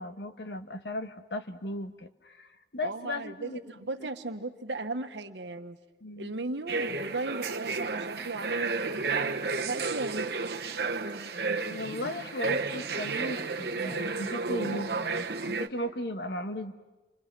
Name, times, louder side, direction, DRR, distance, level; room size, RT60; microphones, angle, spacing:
voice 1, 0.0-3.6 4.0-4.1 6.0-6.3 11.7-16.7, left 1 dB, 70° left, 8 dB, 1.4 m, -36 dB
voice 2, 2.8-5.8 6.2-10.5, right 2 dB, 85° right, 8 dB, 1.3 m, -36 dB
sound 1, 6.7-15.7, right 4 dB, 65° right, 1.2 m, -32 dB
29.5 x 25.5 x 6.1 m, 1.2 s
head